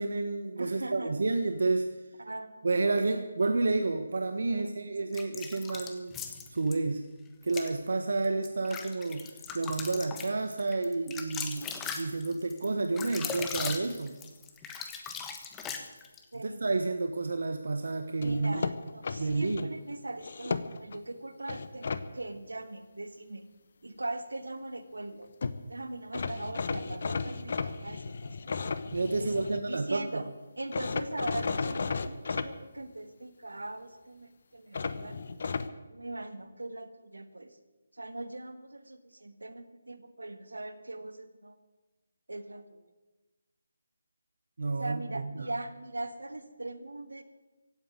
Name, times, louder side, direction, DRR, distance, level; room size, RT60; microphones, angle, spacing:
voice 1, 0.0-1.9 2.6-6.1 6.5-7.1 7.4-14.1 16.3-18.7 19.2-19.7 28.9-30.3 44.6-45.5, right 3 dB, 65° right, 7 dB, 1.2 m, -30 dB
voice 2, 0.6-1.1 2.2-3.2 4.5-4.9 16.3-16.6 18.2-23.4 23.8-25.3 25.7-28.6 29.2-30.2 30.6-35.2 35.9-37.6 37.9-41.6 42.3-42.8 44.8-47.2, right 2 dB, 80° right, 9 dB, 1.8 m, -40 dB
sound 1, 5.1-6.8 7.4-7.7 8.2-16.2, left 6 dB, 10° left, 1.3 m, -39 dB
sound 2, 18.2-19.7 20.2-21.0 21.5-22.0 25.1-25.2 25.4-25.6 26.1-29.6 30.7-32.5 34.7-35.7, left 4 dB, 50° left, 1.0 m, -34 dB
16.0 x 8.9 x 9.5 m, 1.1 s
figure-of-eight pair, 155°, 0 cm